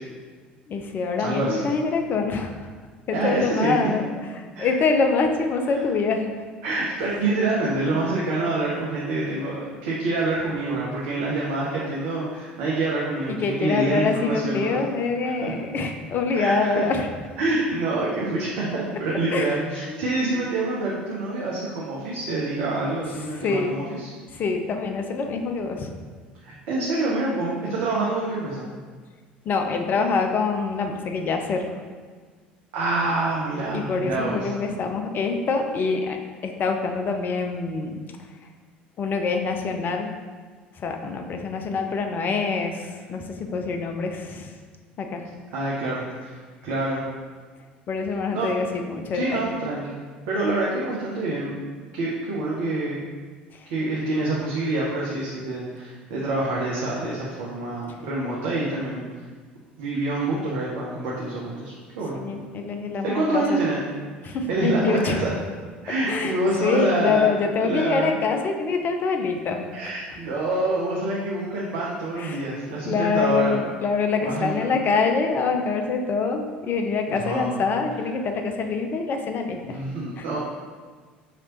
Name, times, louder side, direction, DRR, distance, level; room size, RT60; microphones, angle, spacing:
voice 1, 0.7-2.7 3.1-4.1 4.6-6.3 13.3-17.1 19.3-19.6 20.3-20.5 23.4-23.7 24.3-25.9 29.4-31.7 33.7-38.0 39.0-40.1 40.8-42.8 43.1-44.5 45.0-45.2 47.9-49.5 53.5-53.7 62.2-63.6 64.2-65.2 66.1-69.7 72.2-72.5 72.8-79.8 80.2-80.3, left 4 dB, 35° left, 4 dB, 0.5 m, -25 dB
voice 2, 1.2-1.7 3.1-3.7 4.5-4.7 6.6-14.9 15.4-15.5 16.3-16.8 17.4-24.1 26.4-28.7 32.7-34.5 45.5-47.0 48.3-48.5 49.1-50.0 50.3-51.6 51.9-53.0 53.7-59.1 59.8-62.2 63.0-63.9 64.3-65.3 65.8-67.3 67.6-68.2 69.7-73.6 74.2-74.8 77.1-77.6 79.6-80.4, right 2 dB, 60° right, -5 dB, 0.7 m, -26 dB
4.9 x 3.0 x 2.9 m, 1.5 s
figure-of-eight pair, 65°, 5 cm